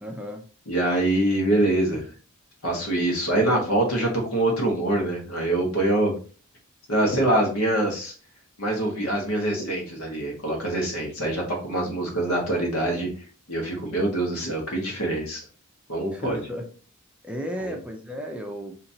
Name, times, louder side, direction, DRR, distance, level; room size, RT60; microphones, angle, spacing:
voice 1, 0.0-0.4 11.9-12.0 16.1-16.7 17.2-18.7, equal, 5° right, 2 dB, 0.5 m, -34 dB
voice 2, 0.7-2.1 2.6-6.1 6.9-8.1 8.6-13.1 13.5-15.4 15.9-16.4 17.6-17.8, right 1 dB, 80° left, 0 dB, 1.4 m, -24 dB
4.1 x 2.9 x 2.7 m, 0.39 s
head